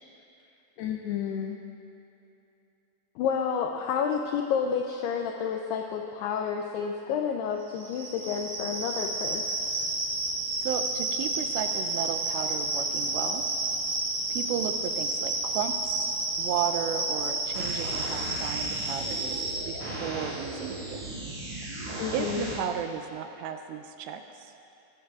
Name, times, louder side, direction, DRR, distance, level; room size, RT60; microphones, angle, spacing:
voice 1, 0.8-1.6 3.2-9.4 22.0-22.5, left 7 dB, 85° left, 3 dB, 2.3 m, -30 dB
sound 1, 7.7-19.6, right 2 dB, 10° right, 1.9 m, -31 dB
voice 2, 10.6-13.4 14.3-16.1 16.4-21.0 22.1-24.5, right 8 dB, 80° right, 7 dB, 2.7 m, -34 dB
sound 2, 17.5-22.5, right 2 dB, 40° right, 2.7 m, -37 dB
21.0 x 15.0 x 2.4 m, 2.8 s
omnidirectional pair, 5.3 m